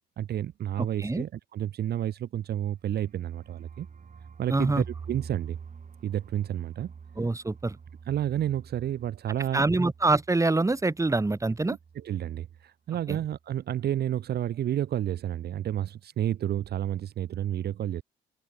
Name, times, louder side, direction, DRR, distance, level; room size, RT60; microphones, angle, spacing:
voice 1, 0.2-3.9 4.4-5.6 6.0-6.9 8.1-9.7 11.7-18.0, right 11 dB, 60° right, 0.8 m, -30 dB
sound 1, 2.6-12.3 12.5-12.6 12.9-13.4, right 6 dB, 45° right, 3.0 m, -47 dB
voice 2, 4.5-4.8 7.2-7.8 9.5-11.8 13.1-13.2, right 2 dB, 15° right, 1.9 m, -25 dB
cardioid pair, 80°, 18 cm